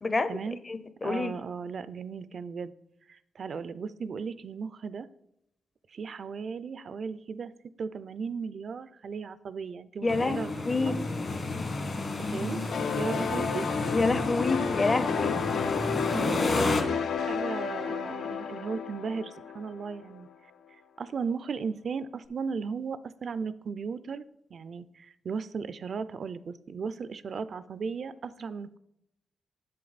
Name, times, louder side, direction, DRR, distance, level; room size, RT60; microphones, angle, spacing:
voice 1, 0.0-0.4 0.7-1.3 10.0-11.0 13.9-15.4, left 3 dB, 30° left, 12 dB, 0.6 m, -28 dB
voice 2, 1.0-2.7 3.1-5.1 5.9-10.9 12.2-13.7 16.1-20.3 21.0-24.2 24.5-28.8, right 5 dB, 60° right, 16 dB, 0.4 m, -36 dB
sound 1, 10.1-16.8, left 3 dB, 45° left, 1.5 m, -31 dB
sound 2, 12.7-20.2, left 6 dB, 80° left, 0.6 m, -32 dB
7.5 x 7.4 x 4.0 m, 0.80 s
cardioid pair, 80°, 0 cm